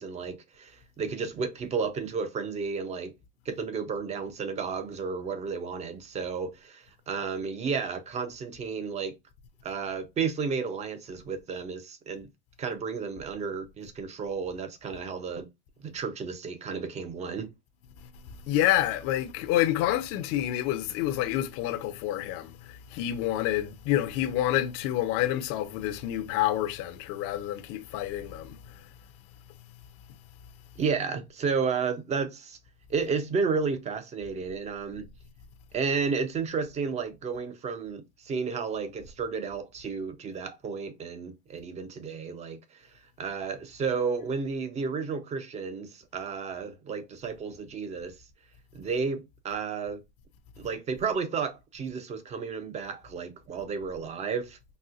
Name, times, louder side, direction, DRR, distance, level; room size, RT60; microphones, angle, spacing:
voice 1, 0.0-3.1 3.5-9.1 9.6-12.3 12.6-15.5 15.8-17.5 30.8-32.6 32.9-35.1 35.7-42.8 43.2-48.2 48.7-50.0 50.6-54.8, right 5 dB, 20° right, 0.5 m, -32 dB
voice 2, 18.5-28.9, left 13 dB, 45° left, 0.5 m, -28 dB
4.1 x 2.1 x 2.5 m
supercardioid pair, 130°, 34 cm